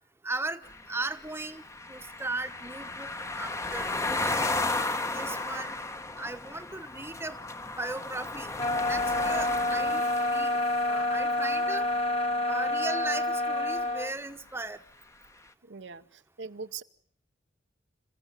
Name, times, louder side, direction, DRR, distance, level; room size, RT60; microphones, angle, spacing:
voice 1, 0.2-0.6 0.9-1.6 1.9-3.1 3.4-4.6 5.1-5.7 6.2-8.5 8.9-10.0 10.3-10.5 10.8-11.9 12.5-14.8, right 2 dB, 15° right, 1.1 m, -37 dB
sound 1, 0.6-12.7, left 2 dB, 15° left, 1.0 m, -35 dB
sound 2, 8.6-14.1, left 2 dB, 30° left, 1.5 m, -28 dB
voice 2, 15.6-16.8, right 5 dB, 70° right, 0.9 m, -41 dB
27.5 x 15.5 x 9.2 m
head